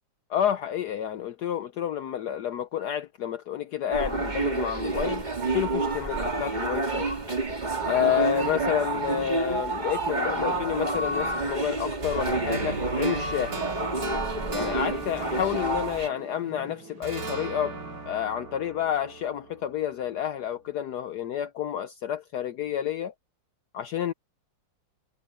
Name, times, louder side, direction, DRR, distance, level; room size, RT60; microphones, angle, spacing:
voice 1, 0.3-7.1 7.9-13.7 14.5-17.8 18.1-23.1 23.7-24.1, left 10 dB, 65° left, 1.2 m, -29 dB
sound 1, 3.9-16.1, right 2 dB, 25° right, 2.3 m, -29 dB
sound 2, 7.0-18.9, right 2 dB, 80° right, 3.3 m, -49 dB
sound 3, 12.0-16.6 17.0-20.1, right 3 dB, 50° right, 2.9 m, -37 dB
omnidirectional pair, 2.0 m